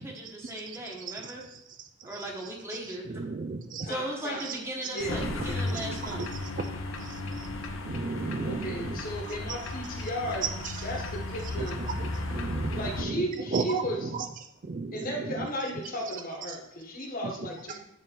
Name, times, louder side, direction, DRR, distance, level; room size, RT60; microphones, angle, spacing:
voice 1, 0.0-1.4 2.0-3.3 3.8-6.3, right 1 dB, 15° right, -1 dB, 1.3 m, -38 dB
voice 2, 1.1-1.6 2.0-2.3 2.7-3.9 4.4-4.6 4.8-4.9 5.7-6.2 7.0-7.5 7.8-9.0 11.6-13.2 13.5-14.2 14.6-15.5 17.2-17.3, right 4 dB, 40° right, 7 dB, 0.4 m, -35 dB
voice 3, 3.8-4.5 4.8-5.8 8.4-10.4 10.8-11.8 12.3-12.4 12.7-14.1 14.9-17.8, equal, 45° left, 1 dB, 1.3 m, -35 dB
sound 1, 5.0-13.0, left 2 dB, 65° left, 0.8 m, -35 dB
9.3 x 3.7 x 4.5 m, 0.80 s
head